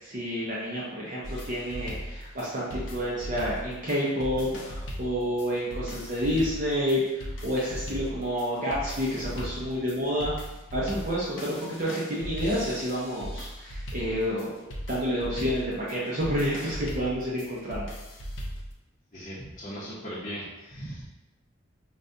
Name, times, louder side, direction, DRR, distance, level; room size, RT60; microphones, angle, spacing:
voice 1, 0.0-10.3 10.7-14.5 14.9-17.9, equal, 40° right, -6 dB, 0.6 m, -29 dB
sound 1, 1.2-18.7, equal, 70° left, 0.6 m, -38 dB
voice 2, 19.1-21.0, equal, 35° left, -10 dB, 0.7 m, -38 dB
5.0 x 2.2 x 2.6 m, 1.0 s
head